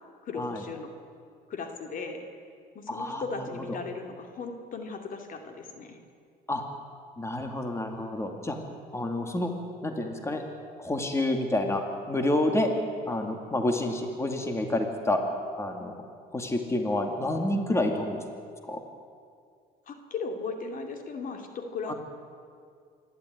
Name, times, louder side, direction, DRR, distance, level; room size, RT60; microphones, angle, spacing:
voice 1, 0.2-0.9 1.5-2.2 2.7-6.0 19.9-21.9, left 4 dB, 55° left, 5 dB, 2.6 m, -37 dB
voice 2, 2.9-3.8 6.5-6.6 7.2-8.6 8.9-9.5 9.8-10.4 10.8-12.7 13.1-15.2 15.6-15.9 16.3-18.2 18.6-18.8 21.9-22.0, left 1 dB, 15° left, 4 dB, 2.4 m, -29 dB
27.0 x 12.0 x 9.6 m, 2.2 s
cardioid pair, 110°, 17 cm